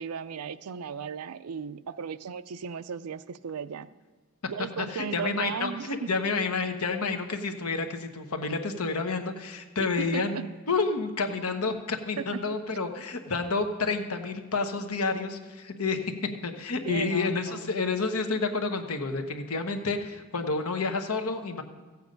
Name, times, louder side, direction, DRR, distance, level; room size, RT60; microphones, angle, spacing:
voice 1, 0.0-3.9 4.5-5.9 9.8-9.9 10.1-10.5 12.2-12.5 16.8-17.7, right 6 dB, 85° right, 14 dB, 0.5 m, -36 dB
voice 2, 4.8-16.1 16.4-21.6, left 4 dB, 80° left, 6 dB, 1.1 m, -29 dB
15.0 x 8.3 x 5.2 m, 1.3 s
head